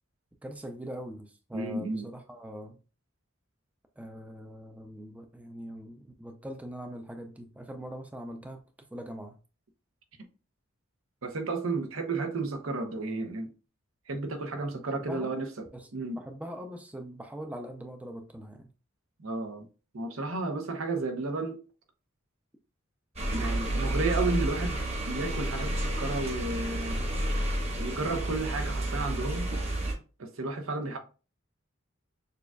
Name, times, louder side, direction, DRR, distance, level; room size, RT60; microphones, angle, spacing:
voice 1, 0.4-2.8 4.0-8.6 8.9-9.4 14.9-15.3 15.7-15.9 16.2-18.7, equal, 5° right, 0.4 m, -42 dB
voice 2, 1.5-2.1 11.2-13.5 14.1-15.7 15.9-16.2 19.2-19.7 19.9-21.6 23.3-27.0 27.8-29.5 30.2-31.0, right 3 dB, 85° right, 0.8 m, -32 dB
sound 1, 23.2-29.9, right 1 dB, 30° right, 1.1 m, -30 dB
6.7 x 2.4 x 2.2 m
head